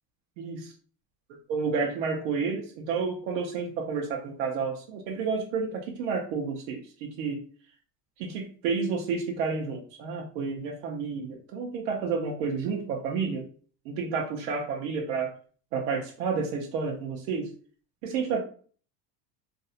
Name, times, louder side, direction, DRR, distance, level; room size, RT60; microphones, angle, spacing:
voice 1, 0.4-0.7 1.5-7.4 8.2-13.4 13.9-15.3 15.7-17.5 18.0-18.4, right 5 dB, 90° right, 2 dB, 0.6 m, -30 dB
2.5 x 2.0 x 2.7 m, 0.43 s
supercardioid pair, 135°, 50 cm